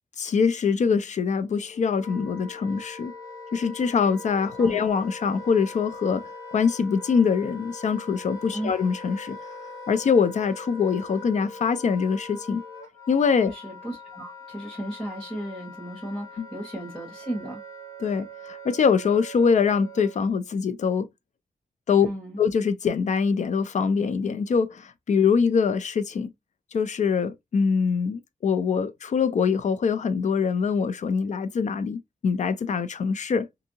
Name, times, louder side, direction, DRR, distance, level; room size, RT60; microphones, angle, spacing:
voice 1, 0.2-3.1 3.5-9.4 9.9-12.6 13.1-13.5 16.4-16.5 18.0-21.1 21.9-22.1 22.4-26.3 26.7-33.5, left 6 dB, 55° left, 0.4 m, -24 dB
Wind instrument woodwind instrument, 1.5-20.3, left 2 dB, 25° left, 1.3 m, -42 dB
voice 2, 13.5-17.6 22.0-22.4, right 1 dB, ahead, 1.3 m, -35 dB
2.7 x 2.6 x 2.6 m
wide cardioid pair, 145°, 14 cm